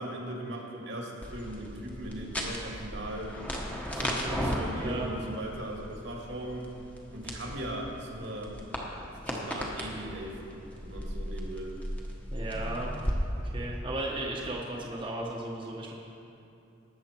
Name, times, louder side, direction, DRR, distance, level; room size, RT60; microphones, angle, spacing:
voice 1, 0.0-3.3 3.9-6.7 7.1-8.5 9.3-10.6 10.8-11.7, right 1 dB, 75° right, -1 dB, 2.1 m, -38 dB
sound 1, 1.2-13.1, equal, 10° left, 1.2 m, -37 dB
voice 2, 4.0-5.1 12.3-12.9 13.4-15.9, right 1 dB, 25° right, -3 dB, 1.1 m, -36 dB
18.5 x 7.2 x 4.5 m, 2.7 s
head